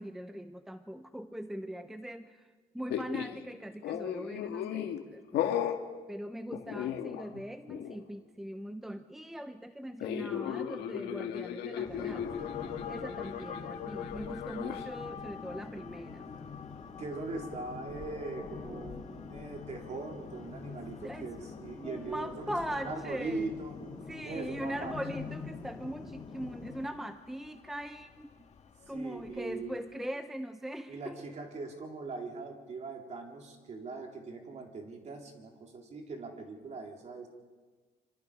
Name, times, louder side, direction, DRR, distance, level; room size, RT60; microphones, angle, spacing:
voice 1, 0.0-2.4 2.7-5.7 6.1-12.6 12.9-16.3 21.0-21.3 21.8-23.5 24.1-28.3 28.9-31.2, equal, ahead, 9 dB, 0.7 m, -41 dB
sound 1, 2.9-3.4 3.8-5.0 5.3-5.8 6.5-7.4 7.7-8.0 10.0-14.8, left 10 dB, 75° left, 1.8 m, -36 dB
sound 2, 11.8-26.8, left 5 dB, 25° left, 3.6 m, -45 dB
sound 3, 12.0-30.0, left 7 dB, 40° left, 1.6 m, -51 dB
voice 2, 17.0-23.8 24.2-25.0 28.9-29.8 30.9-37.3, right 3 dB, 40° right, 1 dB, 3.9 m, -41 dB
26.5 x 26.0 x 5.1 m, 1.4 s
cardioid pair, 110°, 17 cm